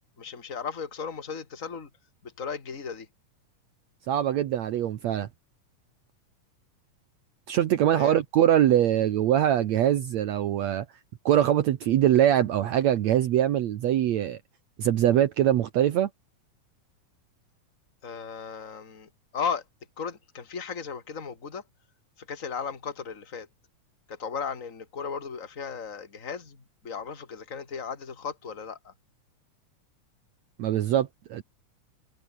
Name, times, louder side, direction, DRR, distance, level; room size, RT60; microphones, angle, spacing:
voice 1, 0.2-1.9 2.2-3.1 7.9-8.2 18.0-19.6 20.0-21.6 22.2-23.5 24.1-28.9, left 6 dB, 25° left, 3.1 m, -36 dB
voice 2, 4.1-5.3 7.5-10.9 11.3-14.4 14.8-16.1 30.6-31.4, right 11 dB, 65° right, 2.2 m, -23 dB
omnidirectional pair, 3.7 m